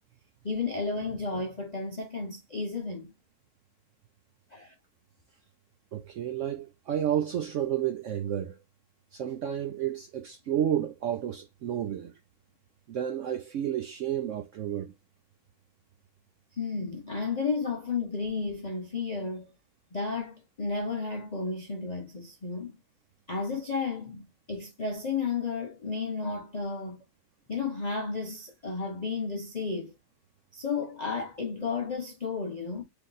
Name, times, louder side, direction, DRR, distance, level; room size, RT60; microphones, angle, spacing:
voice 1, 0.4-3.1 4.5-4.7 16.5-19.5 19.9-22.8 23.3-27.0 27.5-29.9 30.5-32.8, left 4 dB, 65° left, 0.4 m, -33 dB
voice 2, 5.9-8.6 9.1-12.1 12.9-14.9, right 10 dB, 75° right, 0.7 m, -31 dB
3.5 x 3.0 x 3.9 m
omnidirectional pair, 1.8 m